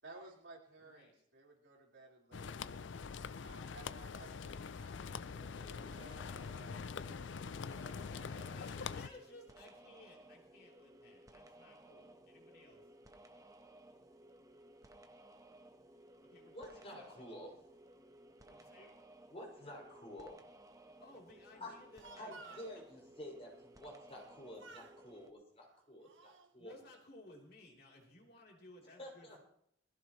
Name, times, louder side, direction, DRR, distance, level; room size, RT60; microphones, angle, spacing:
voice 1, 0.0-3.0 3.4-6.3, right 2 dB, 70° right, -3 dB, 4.5 m, -57 dB
voice 2, 0.8-1.1 8.1-12.9 16.2-17.2 18.5-18.9 20.8-22.6 26.6-29.4, left 2 dB, 55° left, -1 dB, 3.6 m, -59 dB
sound 1, 2.3-9.1, left 5 dB, 70° left, 0.5 m, -44 dB
sound 2, 5.3-25.3, right 1 dB, 20° right, 1.1 m, -59 dB
voice 3, 16.5-17.5 18.8-18.9 19.3-20.4 21.6-21.8 22.2-26.7 29.0-29.4, left 1 dB, 30° left, -2 dB, 6.3 m, -50 dB
Speech, 21.7-22.7 24.1-24.3 24.6-25.0 25.7-26.5, right 4 dB, 85° right, 1.3 m, -56 dB
20.5 x 15.5 x 3.2 m, 0.68 s
head